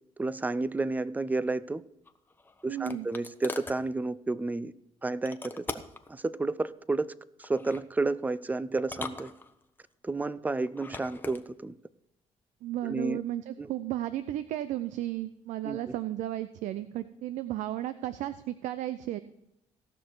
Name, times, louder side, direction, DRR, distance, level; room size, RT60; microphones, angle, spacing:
voice 1, 0.2-1.8 2.6-4.7 5.0-5.8 6.1-7.1 7.4-9.3 10.0-11.7 12.8-13.2 13.6-13.7 15.6-15.8, right 3 dB, 15° right, 18 dB, 0.5 m, -31 dB
sound 1, 2.0-3.8 5.2-6.1 7.4-7.9 8.8-9.8 10.7-11.4, left 3 dB, 15° left, 0.9 m, -41 dB
voice 2, 2.7-3.1 12.6-19.2, right 13 dB, 80° right, 13 dB, 0.5 m, -34 dB
17.5 x 6.1 x 4.6 m, 0.85 s
cardioid pair, 95°, 12 cm